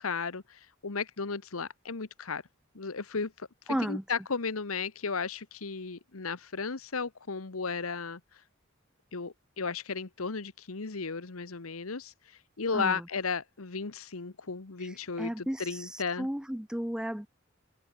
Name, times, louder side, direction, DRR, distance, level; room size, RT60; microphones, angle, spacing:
voice 1, 0.0-2.4 2.7-8.4 9.1-16.3, left 5 dB, 90° left, 1.2 m, -35 dB
voice 2, 3.7-4.0 12.7-13.0 14.8-17.3, equal, 5° right, 0.6 m, -34 dB
head